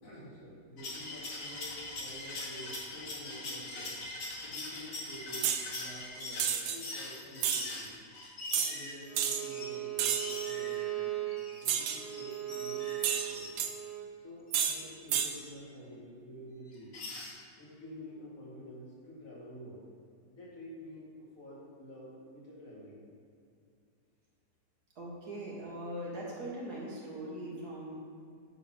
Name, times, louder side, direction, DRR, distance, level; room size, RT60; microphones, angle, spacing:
voice 1, 0.0-4.0 4.5-8.0 8.5-11.1 11.6-13.6 14.2-16.9 17.6-19.8 20.3-21.1 21.4-23.1, equal, 50° left, -7 dB, 2.8 m, -49 dB
sound 1, 0.8-9.8 10.1-13.5 14.6-14.7 15.3-15.5 16.7-17.3, left 2 dB, 75° left, 2.1 m, -42 dB
sound 2, 5.4-5.7 6.4-6.8 7.4-7.6 8.5-8.7 9.2-9.4 10.0-10.4 11.7-12.0 13.0-13.7 14.5-14.8 15.1-15.3, right 9 dB, 80° right, 1.2 m, -30 dB
Bowed string instrument, 9.1-14.1, right 14 dB, 30° right, 0.8 m, -38 dB
voice 2, 25.0-28.0, right 1 dB, 60° right, -4 dB, 2.3 m, -41 dB
9.9 x 4.0 x 6.2 m, 2.3 s
omnidirectional pair, 1.8 m